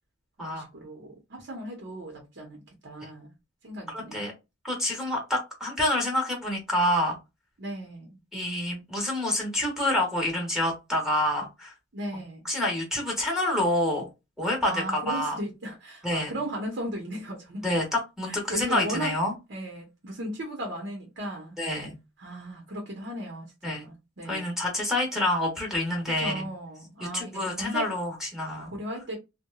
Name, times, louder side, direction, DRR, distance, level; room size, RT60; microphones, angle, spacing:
voice 1, 0.4-3.3 3.6-4.3 7.6-8.2 11.9-12.5 14.6-17.6 18.2-19.1 19.5-21.6 22.2-24.5 26.2-27.9 28.7-29.2, right 1 dB, 60° right, 0.8 m, -36 dB
voice 2, 3.9-4.3 4.6-7.1 8.3-11.7 12.4-14.1 14.4-15.4 16.0-16.3 17.6-19.3 21.6-21.9 23.6-23.8 24.3-26.4 27.0-28.7, left 1 dB, ahead, 0.9 m, -27 dB
2.9 x 2.1 x 2.2 m
head